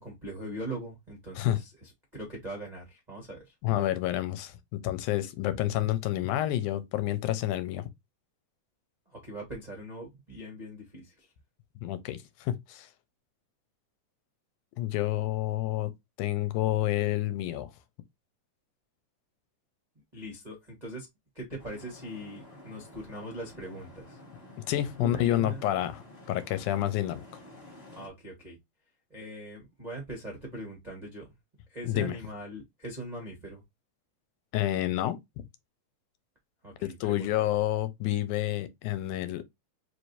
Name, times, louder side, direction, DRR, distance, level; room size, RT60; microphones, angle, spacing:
voice 1, 0.0-3.5 9.1-11.3 20.1-21.1 21.3-24.2 25.0-25.6 27.9-28.6 29.1-31.3 31.7-33.6 36.6-37.5, right 1 dB, 85° right, 0.3 m, -41 dB
voice 2, 3.6-7.9 11.8-12.9 14.8-15.9 16.2-17.7 24.7-26.0 26.3-27.4 31.8-32.2 34.5-35.2 36.8-39.4, left 14 dB, 85° left, 2.1 m, -29 dB
sound 1, 21.6-28.1, left 1 dB, 30° left, 0.7 m, -50 dB
4.7 x 3.2 x 2.6 m
omnidirectional pair, 3.6 m